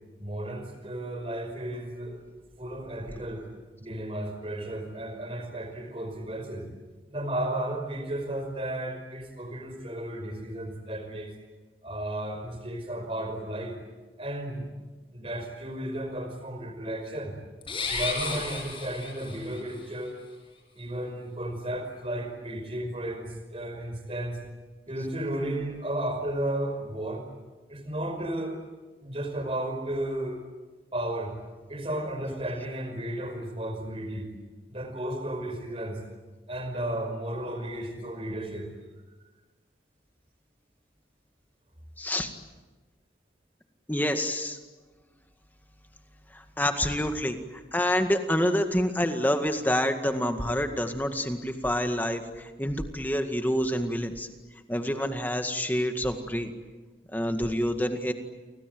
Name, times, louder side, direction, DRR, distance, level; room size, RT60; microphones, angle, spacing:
voice 1, 0.2-2.2 2.6-3.4 3.8-6.6 7.1-11.3 11.8-13.7 14.2-14.7 15.1-17.4 17.9-20.2 20.7-24.4 24.9-27.2 27.7-28.6 29.0-30.4 30.9-31.3 31.7-34.3 34.7-36.0 36.5-38.7, right 1 dB, 30° right, 6 dB, 5.1 m, -33 dB
sound 1, 17.6-19.6, left 4 dB, 30° left, 7.4 m, -33 dB
voice 2, 42.0-42.3 43.9-44.6 46.3-54.3 54.7-56.5 57.1-58.1, equal, 10° left, 6 dB, 1.9 m, -27 dB
30.0 x 25.0 x 7.9 m, 1.3 s
head